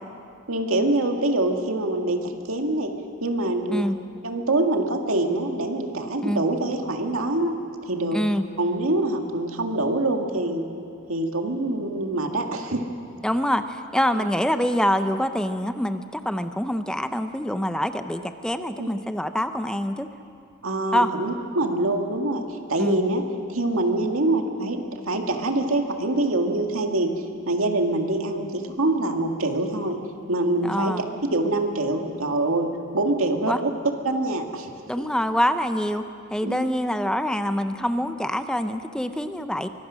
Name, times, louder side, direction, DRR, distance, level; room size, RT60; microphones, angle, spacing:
voice 1, 0.5-2.9 3.2-3.9 4.2-7.6 7.9-8.2 8.6-10.7 11.1-12.8 14.1-14.3 18.8-18.9 20.6-23.2 23.5-27.1 27.5-30.0 30.3-31.0 31.3-32.7 32.9-33.7 34.0-34.7 35.0-35.1 36.4-36.7, right 2 dB, 90° right, 3 dB, 2.0 m, -25 dB
voice 2, 8.1-8.4 13.2-20.1 20.9-21.1 22.8-23.0 30.7-31.0 33.5-33.6 34.9-36.0 36.3-39.7, equal, 5° left, 8 dB, 0.6 m, -25 dB
24.0 x 21.5 x 6.3 m, 2.5 s
head